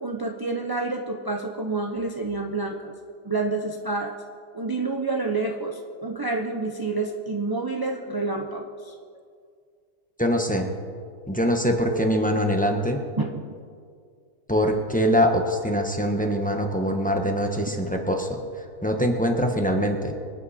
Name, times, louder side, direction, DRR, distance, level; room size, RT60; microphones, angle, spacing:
voice 1, 0.0-2.9 3.2-4.1 4.5-8.9 13.2-13.4, right 3 dB, 25° right, 1 dB, 0.5 m, -28 dB
voice 2, 10.2-10.7 11.3-13.0 14.5-18.4 18.8-20.1, equal, 5° left, 3 dB, 1.1 m, -23 dB
25.0 x 9.5 x 4.3 m, 2.1 s
omnidirectional pair, 1.7 m